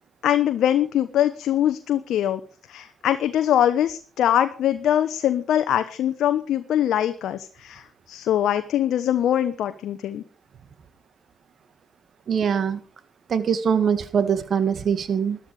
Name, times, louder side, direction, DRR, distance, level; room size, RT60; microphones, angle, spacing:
voice 1, 0.2-2.4 2.7-10.2, left 11 dB, 70° left, 10 dB, 0.9 m, -22 dB
voice 2, 12.3-12.8 13.3-15.4, right 7 dB, 55° right, 13 dB, 1.8 m, -22 dB
13.5 x 12.0 x 4.9 m, 0.39 s
supercardioid pair, 60°, 0 cm